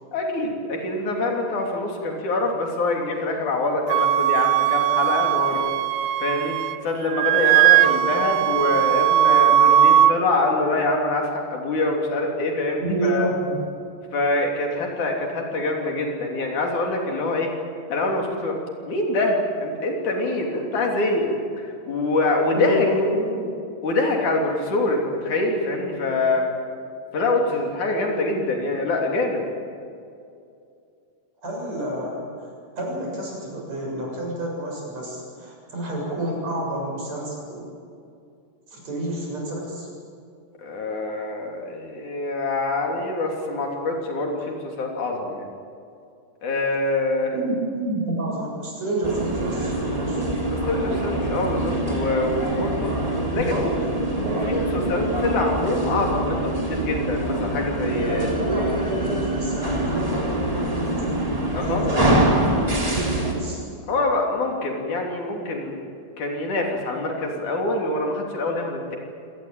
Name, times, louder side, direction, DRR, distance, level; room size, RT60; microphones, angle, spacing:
voice 1, 0.1-5.6 6.2-13.3 14.1-17.5 17.9-18.6 18.9-22.9 23.8-26.5 27.1-29.4 40.6-45.5 46.4-47.3 50.5-53.0 53.3-53.7 54.4-58.3 61.5-61.9 63.9-65.8 66.2-69.0, left 2 dB, 70° left, 1 dB, 4.6 m, -25 dB
Wind instrument woodwind instrument, 3.9-6.8 7.1-10.1, right 12 dB, 80° right, 2.2 m, -18 dB
voice 2, 12.8-13.7 22.5-23.5 31.4-37.7 38.7-39.9 47.3-50.3 53.3-54.4 55.3-55.4 58.1-61.2 61.6-62.7 62.9-63.6, right 1 dB, 55° right, -1 dB, 8.4 m, -29 dB
sound 1, 49.0-63.3, right 1 dB, 10° right, 3.5 m, -25 dB
26.0 x 19.0 x 9.0 m, 2.5 s
omnidirectional pair, 3.7 m